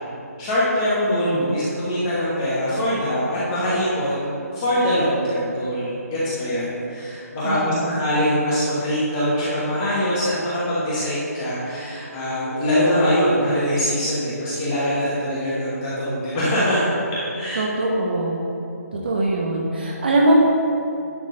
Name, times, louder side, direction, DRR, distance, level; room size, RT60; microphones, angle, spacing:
voice 1, 0.4-4.2 4.5-16.8 17.3-17.6, equal, 15° left, -10 dB, 1.2 m, -23 dB
voice 2, 1.2-1.6 7.4-8.0 17.6-18.4 18.9-20.4, right 2 dB, 35° right, -1 dB, 0.9 m, -22 dB
10.5 x 3.7 x 6.3 m, 2.8 s
hypercardioid pair, 175°, 9 cm